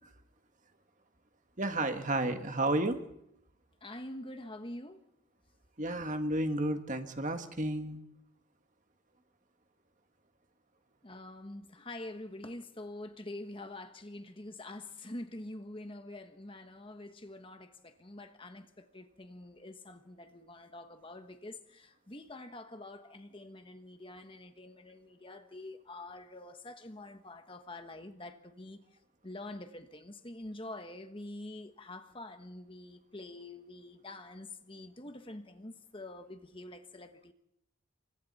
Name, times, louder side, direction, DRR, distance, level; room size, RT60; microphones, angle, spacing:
voice 1, 1.6-3.0 5.8-8.0, right 1 dB, 35° right, 1.7 m, -32 dB
voice 2, 3.8-5.0 11.0-28.8 29.2-37.3, left 1 dB, 25° left, 1.3 m, -46 dB
29.0 x 25.0 x 4.3 m
head